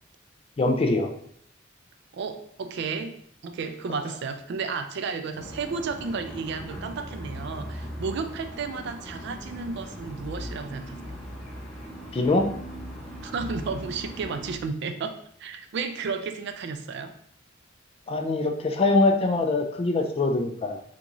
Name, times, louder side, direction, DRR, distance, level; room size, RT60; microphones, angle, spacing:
voice 1, 0.6-1.1 12.1-12.5 18.1-20.8, left 2 dB, 30° left, 5 dB, 0.3 m, -23 dB
voice 2, 2.1-3.1 3.4-11.1 13.2-17.1, right 5 dB, 60° right, 8 dB, 0.3 m, -33 dB
sound 1, 5.4-14.6, equal, ahead, 0.7 m, -39 dB
3.5 x 2.5 x 2.9 m, 0.64 s
head